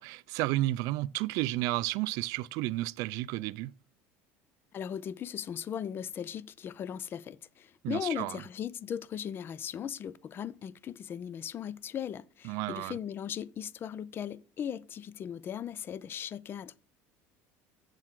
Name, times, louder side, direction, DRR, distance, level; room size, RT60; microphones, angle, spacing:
voice 1, 0.0-3.7 7.8-8.3 12.4-13.0, right 17 dB, 70° right, 0.4 m, -32 dB
voice 2, 4.7-16.8, left 9 dB, 35° left, 0.5 m, -38 dB
7.6 x 7.5 x 3.7 m
supercardioid pair, 115°, 6 cm